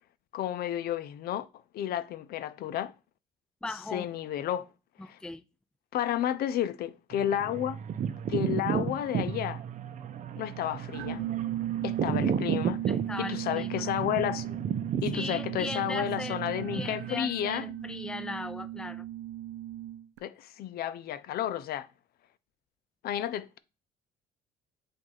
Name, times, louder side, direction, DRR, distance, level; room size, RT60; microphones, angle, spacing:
voice 1, 0.3-1.5 1.7-2.9 3.9-4.7 5.1-5.2 5.9-7.8 8.3-9.6 10.4-11.2 11.8-12.8 13.2-14.6 15.0-17.7 20.2-21.9 23.0-23.6, left 11 dB, 65° left, 0.6 m, -31 dB
voice 2, 3.6-4.1 5.0-5.4 12.9-13.8 15.1-16.4 16.7-19.0, left 2 dB, 5° left, 0.4 m, -38 dB
sound 1, 7.1-17.2, right 8 dB, 50° right, 0.7 m, -33 dB
sound 2, 10.9-20.2, right 13 dB, 90° right, 0.7 m, -36 dB
7.8 x 2.6 x 5.6 m
cardioid pair, 110°, 17 cm